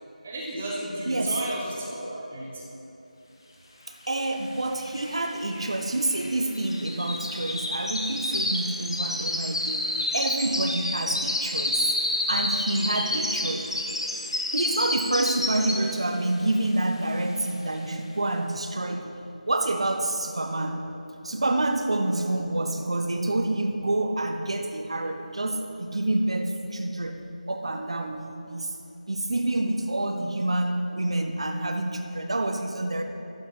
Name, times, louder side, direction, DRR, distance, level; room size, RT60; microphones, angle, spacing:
voice 1, 0.2-2.6 10.4-10.7 12.7-13.5 14.1-14.2, right 1 dB, 5° right, -3 dB, 0.3 m, -35 dB
voice 2, 1.1-1.4 4.1-11.9 12.3-13.6 14.5-19.2 19.5-20.9 21.2-27.2 27.5-28.8 29.1-33.0, right 2 dB, 45° right, 5 dB, 0.7 m, -28 dB
sound 1, 4.3-4.4 4.6-16.1 16.5-16.8 17.2-17.3, left 1 dB, 35° left, 0.9 m, -29 dB
12.5 x 8.8 x 4.4 m, 2.9 s
figure-of-eight pair, 175°, 4 cm